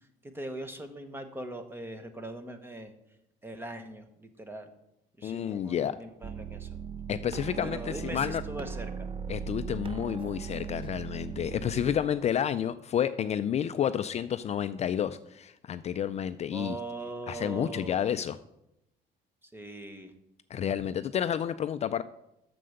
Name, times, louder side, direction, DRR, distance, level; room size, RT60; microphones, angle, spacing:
voice 1, 0.2-2.9 3.4-4.7 5.2-6.7 7.6-8.9 16.5-18.0 19.5-20.1, right 1 dB, 15° right, 8 dB, 1.1 m, -40 dB
voice 2, 5.2-5.9 7.1-8.4 9.3-16.8 17.3-18.4 20.5-22.0, left 9 dB, 40° left, 12 dB, 0.4 m, -30 dB
sound 1, 6.2-12.0, right 7 dB, 30° right, 0.5 m, -38 dB
7.6 x 6.8 x 6.5 m, 0.84 s
cardioid pair, 110°, 17 cm